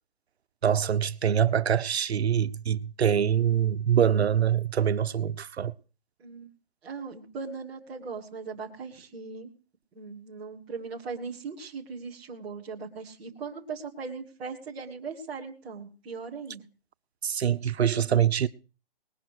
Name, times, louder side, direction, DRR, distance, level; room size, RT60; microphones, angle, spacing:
voice 1, 0.6-5.7 17.2-18.5, right 9 dB, 90° right, 1.0 m, -24 dB
voice 2, 6.8-9.5 9.9-16.7, right 5 dB, 5° right, 0.6 m, -39 dB
20.0 x 11.0 x 4.8 m
hypercardioid pair, 175°, 31 cm